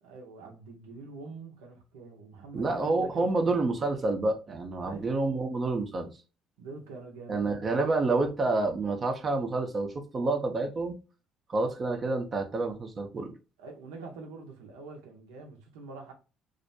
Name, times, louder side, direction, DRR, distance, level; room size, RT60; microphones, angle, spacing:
voice 1, 0.0-3.7 4.8-5.1 6.6-7.9 13.6-16.1, right 3 dB, 85° right, 0.6 m, -45 dB
voice 2, 2.5-6.1 7.3-11.0 11.5-13.3, right 3 dB, 40° right, 0.6 m, -28 dB
2.5 x 2.1 x 2.6 m
hypercardioid pair, 60°, 0 cm